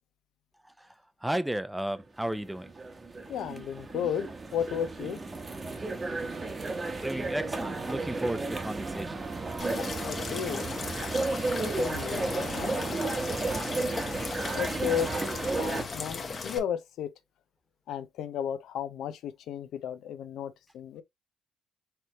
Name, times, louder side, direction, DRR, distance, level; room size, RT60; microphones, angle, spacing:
voice 1, 0.6-3.0 7.0-9.3, right 1 dB, 5° right, 0.5 m, -34 dB
sound 1, 2.0-15.8, right 3 dB, 30° right, 1.0 m, -33 dB
voice 2, 3.3-5.2 9.8-10.7 11.6-13.0 14.6-17.1 17.9-21.0, left 9 dB, 80° left, 0.6 m, -34 dB
sound 2, 9.6-16.6, left 4 dB, 40° left, 1.0 m, -37 dB
4.6 x 3.2 x 2.9 m
cardioid pair, 90°, 0 cm